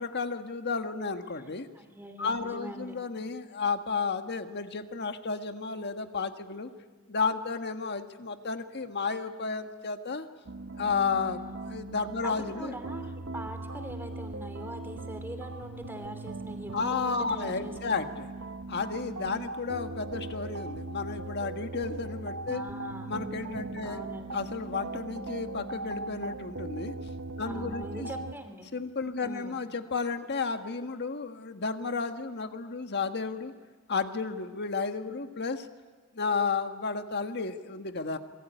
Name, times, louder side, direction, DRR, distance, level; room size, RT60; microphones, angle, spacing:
voice 1, 0.0-1.7 2.2-6.7 7.1-10.2 10.8-12.7 16.7-18.3 18.7-22.6 23.1-24.0 24.3-26.9 27.3-28.1 28.7-33.5 33.9-35.7 36.1-38.2, left 4 dB, 50° left, 7 dB, 1.5 m, -32 dB
voice 2, 1.7-2.9 12.2-18.0 22.5-23.1 23.8-24.4 27.4-28.7 29.2-29.6, right 1 dB, 10° right, 6 dB, 3.1 m, -42 dB
sound 1, 10.5-28.3, right 2 dB, 60° right, 0.8 m, -39 dB
26.5 x 22.5 x 9.3 m, 1.4 s
head